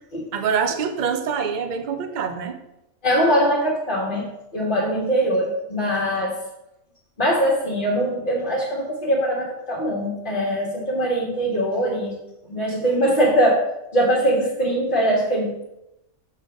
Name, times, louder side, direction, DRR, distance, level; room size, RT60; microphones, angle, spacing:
voice 1, 0.3-2.6, right 6 dB, 45° right, 7 dB, 0.6 m, -25 dB
voice 2, 3.0-6.4 7.2-12.2 12.4-13.7 13.9-15.6, equal, 35° left, -6 dB, 1.5 m, -22 dB
6.5 x 3.9 x 5.2 m, 0.89 s
omnidirectional pair, 1.5 m